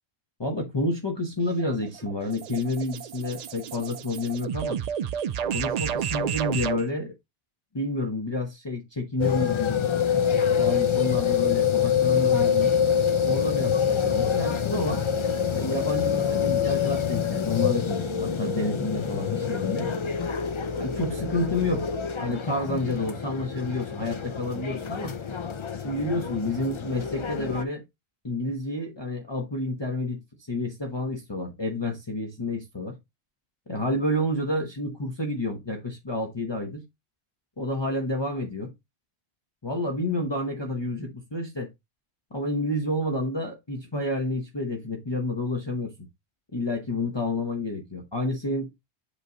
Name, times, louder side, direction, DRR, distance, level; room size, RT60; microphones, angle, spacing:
voice 1, 0.4-4.8 5.5-7.1 7.7-9.8 10.5-12.7 13.2-15.0 15.5-19.9 20.8-21.9 22.2-25.2 25.8-27.8 28.2-30.2 30.5-33.0 33.7-36.8 37.6-38.7 39.6-41.7 42.3-46.1 46.5-48.7, left 1 dB, 25° left, 1.0 m, -29 dB
sound 1, 1.4-6.8, right 8 dB, 60° right, 0.4 m, -31 dB
sound 2, 9.2-27.6, left 7 dB, 45° left, 0.4 m, -26 dB
8.1 x 3.2 x 3.8 m
omnidirectional pair, 1.1 m